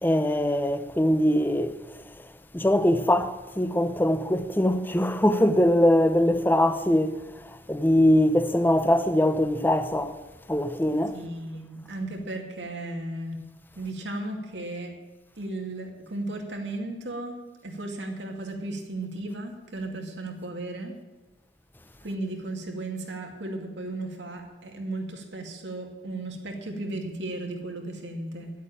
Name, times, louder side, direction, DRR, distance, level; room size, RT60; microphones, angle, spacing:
voice 1, 0.0-1.8 2.5-10.2 10.5-11.2, left 1 dB, 10° left, 0.6 m, -22 dB
voice 2, 11.1-13.4 13.8-14.9 15.4-17.4 17.6-20.9 22.0-28.5, right 2 dB, 85° right, 2.3 m, -35 dB
11.0 x 8.3 x 8.8 m
head